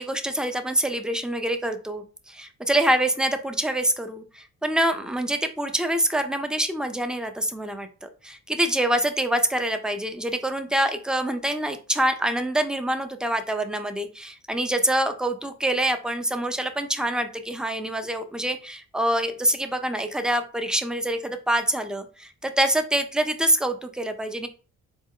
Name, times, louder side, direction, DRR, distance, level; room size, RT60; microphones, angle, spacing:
voice 1, 0.0-24.5, right 1 dB, 5° right, 8 dB, 0.5 m, -25 dB
4.3 x 2.1 x 3.7 m, 0.36 s
cardioid pair, 90°, 30 cm